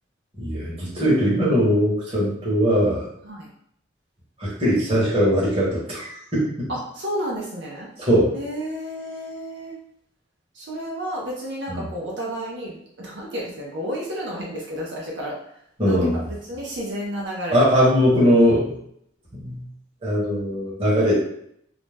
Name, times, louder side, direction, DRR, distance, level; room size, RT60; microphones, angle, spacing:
voice 1, 0.4-3.1 4.4-6.5 8.0-8.3 11.7-11.9 15.8-16.2 17.5-18.8 19.4-19.6 20.0-21.2, equal, 30° right, -7 dB, 1.1 m, -20 dB
voice 2, 6.7-7.9 8.3-9.8 10.5-15.4 15.8-17.6, equal, 80° right, -4 dB, 0.6 m, -31 dB
2.5 x 2.1 x 3.2 m, 0.69 s
head